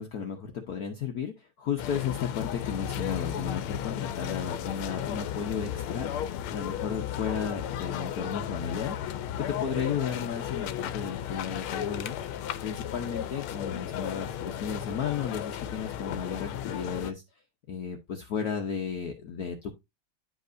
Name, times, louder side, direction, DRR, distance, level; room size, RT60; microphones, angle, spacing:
voice 1, 0.0-12.2 12.6-17.2 17.7-19.7, left 7 dB, 55° left, 4 dB, 1.1 m, -34 dB
sound 1, 1.8-17.1, left 10 dB, 85° left, 1.5 m, -34 dB
10.0 x 5.3 x 2.6 m, 0.21 s
omnidirectional pair, 2.3 m